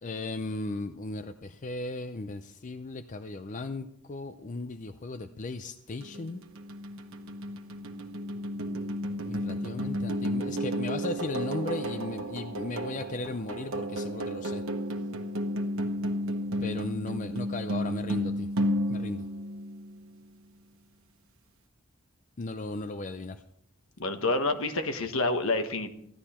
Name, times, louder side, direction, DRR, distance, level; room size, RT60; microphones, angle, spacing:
voice 1, 0.0-6.4 9.3-14.6 16.6-18.5 18.9-19.3 22.4-23.4, left 2 dB, 35° left, 10 dB, 0.5 m, -36 dB
sound 1, 6.0-20.2, equal, 70° right, 1.3 m, -33 dB
voice 2, 24.0-25.9, left 2 dB, 70° left, 8 dB, 1.2 m, -28 dB
15.0 x 12.0 x 4.3 m, 0.73 s
head